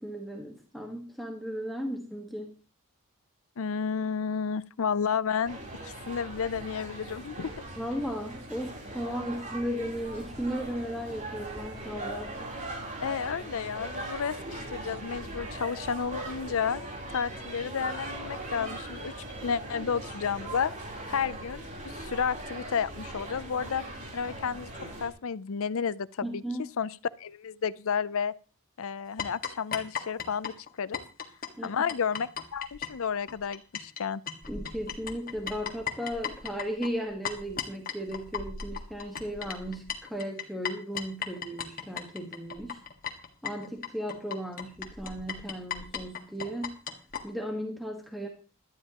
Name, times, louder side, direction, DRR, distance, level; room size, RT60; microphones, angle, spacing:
voice 1, 0.0-2.6 7.8-12.5 26.2-26.7 31.6-31.8 34.5-42.8 43.4-46.8 47.2-48.3, equal, ahead, 1.5 m, -36 dB
voice 2, 3.6-5.6 5.8-7.5 13.0-16.8 17.1-19.1 19.4-20.7 21.1-21.7 21.9-23.8 24.1-24.7 25.0-26.4 26.8-28.3 28.8-31.0 31.6-34.2, left 6 dB, 65° left, 0.5 m, -31 dB
sound 1, 5.4-25.1, right 1 dB, 35° right, 3.7 m, -40 dB
sound 2, 29.2-34.0 34.3-47.2, left 7 dB, 40° left, 1.7 m, -37 dB
17.5 x 12.5 x 3.0 m
head